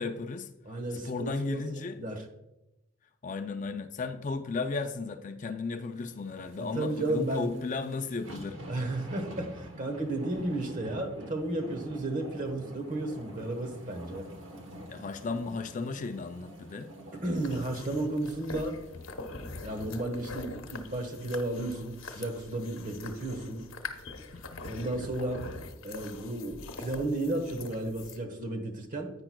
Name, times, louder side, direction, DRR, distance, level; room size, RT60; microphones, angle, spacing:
voice 1, 0.0-0.5 1.0-2.0 3.2-8.6 14.9-16.9 24.3-24.8, left 4 dB, 35° left, 8 dB, 0.4 m, -35 dB
voice 2, 0.6-2.2 6.6-7.5 8.7-14.3 17.2-18.8 19.6-23.7 24.6-25.5 25.8-29.1, right 2 dB, 40° right, 5 dB, 1.2 m, -33 dB
sound 1, 6.0-20.4 20.9-21.0, equal, 65° right, 1.2 m, -47 dB
sound 2, 17.4-28.2, left 3 dB, 70° left, 0.9 m, -43 dB
10.5 x 8.8 x 2.3 m, 0.94 s
head